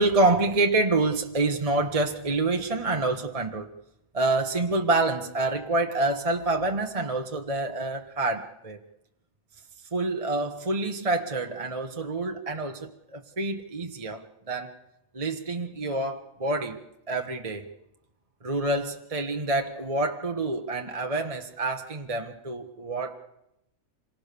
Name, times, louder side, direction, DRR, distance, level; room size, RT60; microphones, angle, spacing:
voice 1, 0.0-3.7 4.1-8.8 9.9-14.7 15.1-16.8 17.1-17.7 18.4-23.2, right 2 dB, 30° right, 4 dB, 1.3 m, -27 dB
27.0 x 23.0 x 6.9 m, 0.88 s
omnidirectional pair, 1.4 m